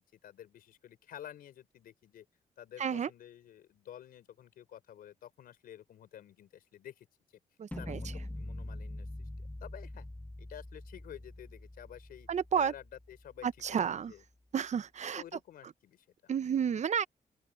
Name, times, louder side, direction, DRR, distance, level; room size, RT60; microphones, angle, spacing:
voice 1, 0.0-2.3 2.6-7.1 7.8-10.1 10.4-12.3 12.6-14.2 15.1-16.3, left 11 dB, 90° left, 4.3 m, -51 dB
voice 2, 7.6-8.0 12.3-12.7 13.4-14.1 14.5-15.2 16.3-17.1, right 8 dB, 50° right, 0.7 m, -31 dB
sound 1, 7.7-13.7, left 1 dB, 10° left, 1.1 m, -44 dB
open air
cardioid pair, 95°, 15 cm